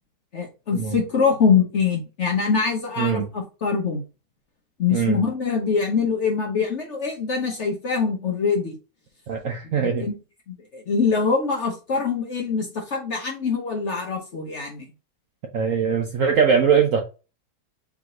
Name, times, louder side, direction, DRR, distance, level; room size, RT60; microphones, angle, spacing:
voice 1, 0.3-4.0 4.8-8.8 9.8-10.2 10.5-14.9, left 5 dB, 55° left, 0.8 m, -24 dB
voice 2, 3.0-3.3 4.9-5.2 9.3-10.1 15.5-17.0, right 6 dB, 70° right, 0.8 m, -21 dB
3.5 x 3.1 x 3.7 m
omnidirectional pair, 1.9 m